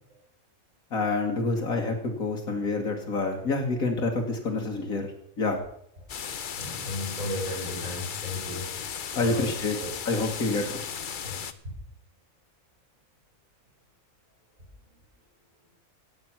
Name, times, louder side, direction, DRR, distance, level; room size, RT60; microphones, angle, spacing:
voice 1, 0.9-5.1 5.4-5.6 9.1-9.7 10.1-10.7, left 3 dB, 80° left, 1 dB, 2.2 m, -27 dB
sound 1, 6.1-11.5, left 7 dB, 45° left, 0.7 m, -36 dB
voice 2, 6.6-8.7 9.1-9.5 9.8-9.9 11.2-11.4, left 1 dB, 75° right, -3 dB, 5.7 m, -34 dB
16.5 x 7.9 x 6.0 m, 0.68 s
omnidirectional pair, 1.4 m